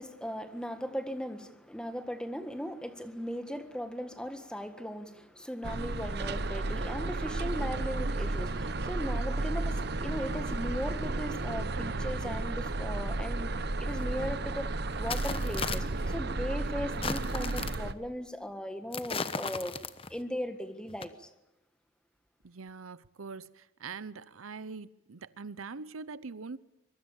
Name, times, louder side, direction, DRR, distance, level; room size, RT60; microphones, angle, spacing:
voice 1, 0.0-19.8 20.1-21.3, equal, 5° left, 1.6 m, -38 dB
sound 1, 5.6-17.9, right 2 dB, 50° right, 0.9 m, -33 dB
sound 2, 14.0-14.1 14.9-16.1 16.9-17.9 18.9-20.2 20.9-21.0, left 4 dB, 25° left, 1.0 m, -36 dB
voice 2, 22.4-26.6, right 4 dB, 90° right, 0.7 m, -43 dB
24.0 x 23.0 x 7.2 m
head